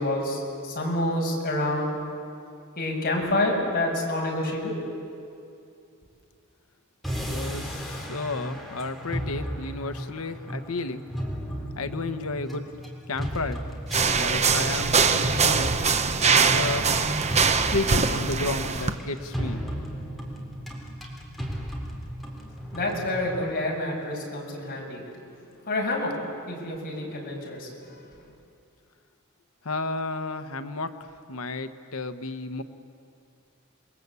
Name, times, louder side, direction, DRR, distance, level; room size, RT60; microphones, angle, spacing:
voice 1, 0.0-2.0 2.8-4.7 22.7-25.1 25.7-26.2 26.5-27.7 28.0-28.1, left 1 dB, 45° left, -2 dB, 6.4 m, -28 dB
sound 1, 7.0-23.4, equal, ahead, 3.7 m, -35 dB
voice 2, 7.3-11.0 11.8-12.6 13.1-13.6 14.0-15.7 16.3-16.9 17.6-19.6 29.6-32.6, left 3 dB, 80° left, 10 dB, 1.1 m, -32 dB
sound 2, 13.9-18.9, right 5 dB, 30° right, 1.0 m, -22 dB
28.5 x 22.0 x 8.3 m, 2.5 s
head